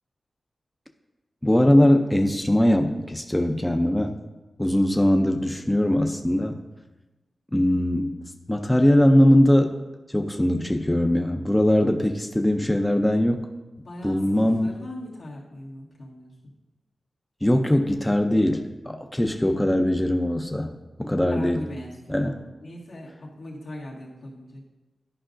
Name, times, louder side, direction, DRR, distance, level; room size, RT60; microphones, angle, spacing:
voice 1, 1.4-4.2 4.6-6.6 7.5-8.2 8.5-9.8 10.1-13.5 14.0-14.7 17.4-21.6 22.1-22.3, left 1 dB, 10° left, 5 dB, 0.4 m, -21 dB
voice 2, 13.8-16.5 21.3-24.6, left 1 dB, 85° left, -5 dB, 1.7 m, -40 dB
11.0 x 5.2 x 2.5 m, 1.1 s
wide cardioid pair, 100°, 0 cm